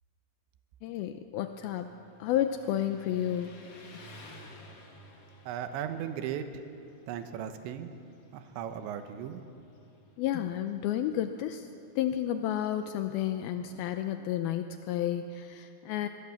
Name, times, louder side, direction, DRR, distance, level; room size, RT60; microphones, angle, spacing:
voice 1, 0.8-1.9 2.2-3.6 10.2-11.7 12.0-16.1, left 11 dB, 80° left, 8 dB, 2.2 m, -31 dB
Motorcycle, 1.4-14.0, left 1 dB, 40° left, 2.9 m, -55 dB
voice 2, 5.5-6.6 7.1-7.9 8.3-9.4, right 9 dB, 85° right, 8 dB, 3.4 m, -37 dB
23.5 x 23.0 x 7.2 m, 2.7 s
omnidirectional pair, 5.2 m